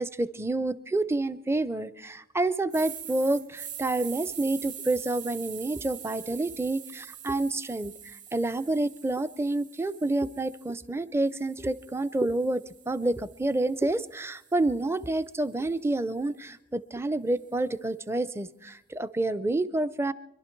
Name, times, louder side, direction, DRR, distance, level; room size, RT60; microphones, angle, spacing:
voice 1, 0.0-7.9 8.3-20.1, right 2 dB, 10° right, 16 dB, 0.5 m, -28 dB
sound 1, 2.7-10.8 11.3-15.5, right 9 dB, 40° right, 1.2 m, -44 dB
25.5 x 12.0 x 4.5 m, 0.89 s
head